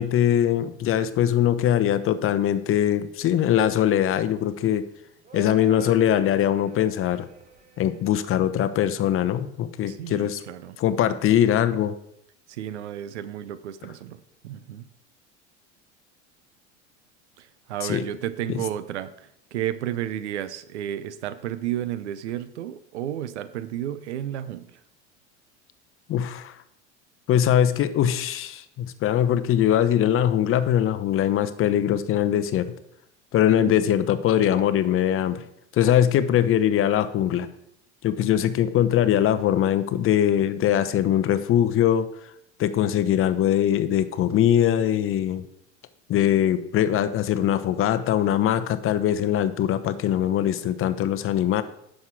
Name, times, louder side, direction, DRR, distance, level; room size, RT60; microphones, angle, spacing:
voice 1, 0.0-4.8 5.3-7.3 7.8-10.4 10.8-11.9 17.8-18.0 18.5-18.6 26.1-26.5 27.3-32.7 33.3-35.4 35.7-37.5 38.0-42.1 42.6-45.5 46.1-51.6, left 10 dB, 40° left, 13 dB, 0.8 m, -22 dB
sound 1, 3.1-8.4, right 2 dB, 25° right, 1.9 m, -47 dB
voice 2, 9.9-10.8 12.5-14.2 14.4-14.8 17.4-19.1 19.5-24.7 33.6-33.7, right 11 dB, 85° right, 14 dB, 0.7 m, -32 dB
9.6 x 6.5 x 4.7 m, 0.75 s
hypercardioid pair, 90°, 34 cm